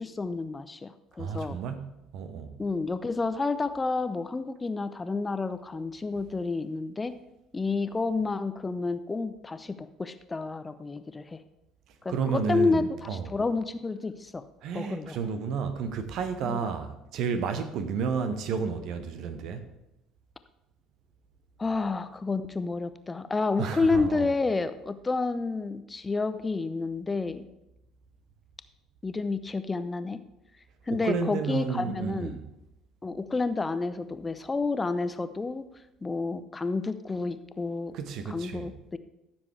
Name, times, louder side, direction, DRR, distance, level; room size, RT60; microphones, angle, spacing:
voice 1, 0.0-1.6 2.6-7.1 7.5-11.4 12.0-14.4 14.7-15.2 16.4-16.7 21.6-27.4 29.0-30.2 30.9-32.3 33.0-35.7 36.0-37.9 38.3-39.0, left 3 dB, 20° left, 0.6 m, -30 dB
voice 2, 1.2-2.6 12.1-13.3 14.6-19.7 23.6-24.3 30.9-32.5 37.9-38.7, right 6 dB, 55° right, 1.0 m, -31 dB
14.5 x 7.1 x 3.3 m
figure-of-eight pair, 55°, 0 cm